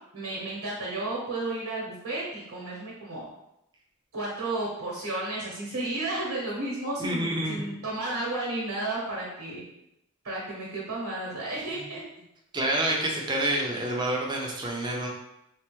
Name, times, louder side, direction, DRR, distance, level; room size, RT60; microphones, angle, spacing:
voice 1, 0.1-3.2 4.1-9.6 10.2-12.0, right 2 dB, 65° right, -6 dB, 0.9 m, -32 dB
voice 2, 7.0-7.8 11.7-11.9 12.5-15.1, right 1 dB, 20° right, -1 dB, 0.5 m, -28 dB
3.2 x 2.1 x 3.0 m, 0.83 s
head